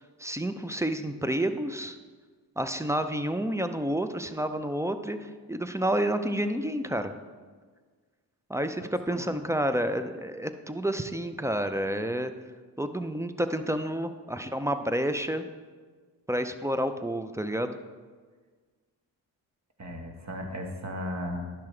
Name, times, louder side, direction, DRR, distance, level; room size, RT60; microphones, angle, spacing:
voice 1, 0.2-2.0 2.6-7.1 8.5-12.3 12.8-15.4 16.3-17.7, right 1 dB, 5° right, 9 dB, 0.5 m, -29 dB
voice 2, 19.8-21.5, left 1 dB, 35° right, 3 dB, 1.5 m, -36 dB
10.5 x 5.9 x 3.3 m, 1.5 s
supercardioid pair, 40°, 47 cm